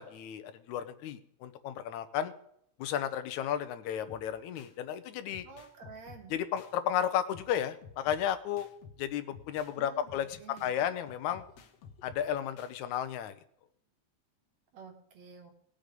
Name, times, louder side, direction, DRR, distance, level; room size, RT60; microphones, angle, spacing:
voice 1, 0.0-2.3 2.8-5.5 6.3-8.7 9.0-11.4 12.0-13.3, left 10 dB, 80° left, 10 dB, 2.2 m, -33 dB
sound 1, 4.0-4.8 5.3-6.8 7.3-9.8 10.1-12.8, left 6 dB, 65° left, 2.0 m, -54 dB
voice 2, 5.4-6.3 9.8-10.7 14.7-15.5, right 5 dB, 65° right, 3 dB, 2.8 m, -50 dB
18.5 x 6.5 x 5.2 m, 0.71 s
omnidirectional pair, 3.3 m